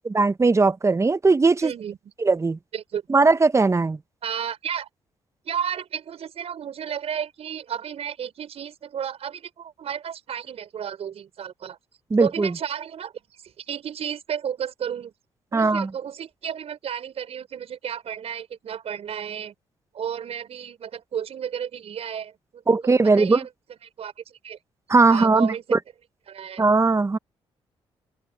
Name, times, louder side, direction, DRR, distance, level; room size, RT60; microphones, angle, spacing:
voice 1, 0.1-1.7 2.2-2.6 3.1-4.0 12.1-12.5 15.5-15.9 22.7-23.4 24.9-25.8 26.6-27.2, right 3 dB, 25° right, 1.0 m, -19 dB
voice 2, 1.6-2.1 2.7-3.0 4.2-4.9 5.4-11.8 12.2-15.1 15.5-19.5 19.9-22.8 23.0-23.5 23.8-24.6 25.1-25.8 26.3-26.6, right 8 dB, 65° right, 6.5 m, -33 dB
open air
supercardioid pair, 60°, 11 cm